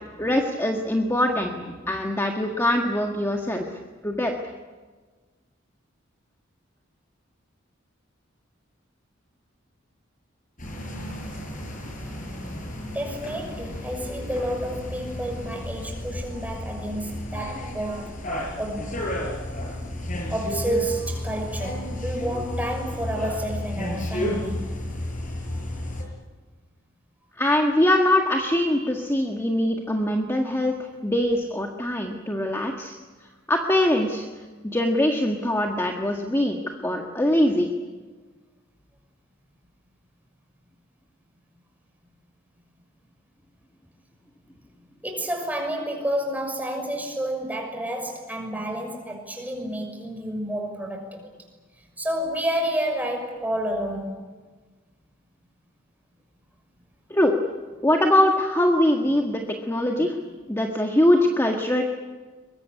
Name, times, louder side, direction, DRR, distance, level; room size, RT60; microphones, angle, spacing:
voice 1, 0.2-4.3 27.4-33.0 33.5-34.3 34.6-36.6 36.8-37.7 57.1-57.3 57.8-59.4 59.7-60.2 60.5-61.8, left 1 dB, 15° left, 1 dB, 1.7 m, -22 dB
sound 1, 10.6-26.0, left 1 dB, 40° left, 6.5 m, -32 dB
voice 2, 12.9-18.1 18.6-18.9 20.3-24.6 45.0-51.3 52.0-54.2 60.0-60.1, right 1 dB, 10° right, 2 dB, 6.2 m, -30 dB
23.0 x 22.5 x 9.8 m, 1.4 s
head